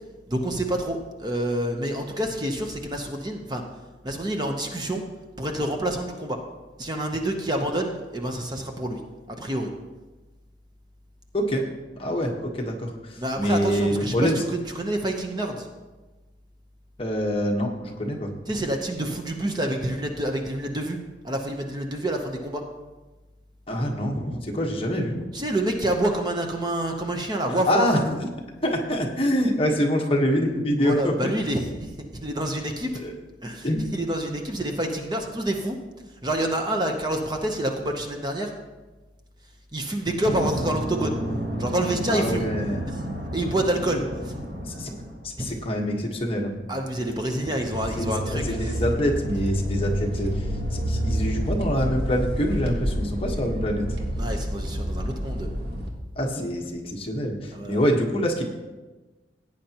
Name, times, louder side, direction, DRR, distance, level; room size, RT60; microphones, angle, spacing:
voice 1, 0.3-3.6 4.0-5.0 5.4-6.4 6.8-9.0 9.3-9.7 13.2-15.7 18.5-21.0 21.2-22.6 25.3-27.9 30.8-33.0 33.4-35.8 36.2-38.5 39.7-41.2 41.6-42.5 42.9-43.0 43.3-44.3 45.4-45.6 46.7-48.4 50.9-51.0 54.1-55.5 57.5-57.8, right 1 dB, 25° right, 3 dB, 0.8 m, -28 dB
voice 2, 12.0-14.4 17.0-18.3 23.7-25.2 27.5-28.2 28.6-31.3 33.0-33.1 33.6-33.8 42.1-42.8 44.6-44.9 45.2-46.5 47.9-50.5 50.7-53.8 56.2-58.4, equal, 30° left, 1 dB, 1.2 m, -25 dB
sound 1, 40.2-45.3 47.4-55.9, equal, 85° right, 1.6 m, -29 dB
17.0 x 9.0 x 2.9 m, 1.2 s
head